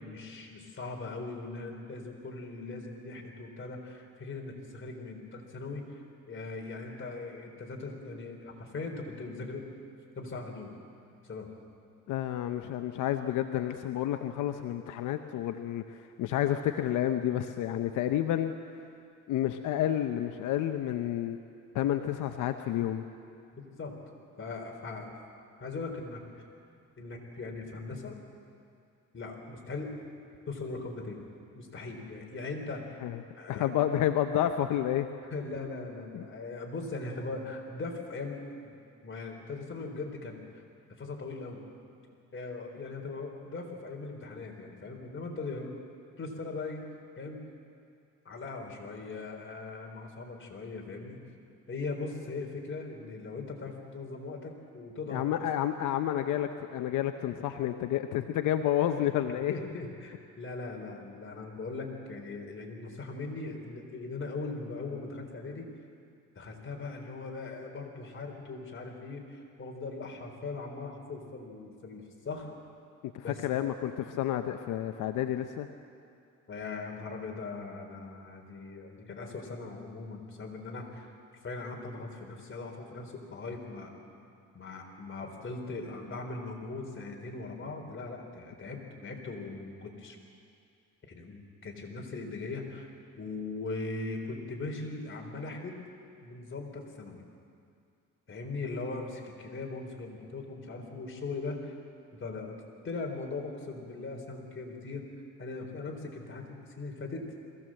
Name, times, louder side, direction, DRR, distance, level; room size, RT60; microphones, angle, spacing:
voice 1, 0.0-9.7 10.2-10.7 11.2-11.5 23.5-24.0 24.4-25.1 25.6-26.2 27.0-28.2 29.1-29.9 30.5-31.2 31.5-33.0 33.4-33.8 35.3-38.7 39.0-40.6 41.0-41.6 42.3-45.8 46.2-46.9 47.2-47.4 48.2-51.2 51.7-55.2 59.5-65.7 66.3-72.5 73.2-73.4 76.5-81.1 81.4-83.9 84.5-90.2 91.1-92.9 93.2-95.8 96.2-97.2 98.3-101.7 102.1-105.1 105.4-107.3, left 3 dB, 40° left, 1 dB, 4.0 m, -40 dB
voice 2, 12.1-18.5 19.3-21.4 21.7-23.0 33.0-33.2 33.5-35.1 36.1-36.2 55.1-59.5 73.0-75.7, left 11 dB, 85° left, 7 dB, 0.8 m, -30 dB
22.0 x 16.0 x 7.7 m, 2.4 s
cardioid pair, 90°, 30 cm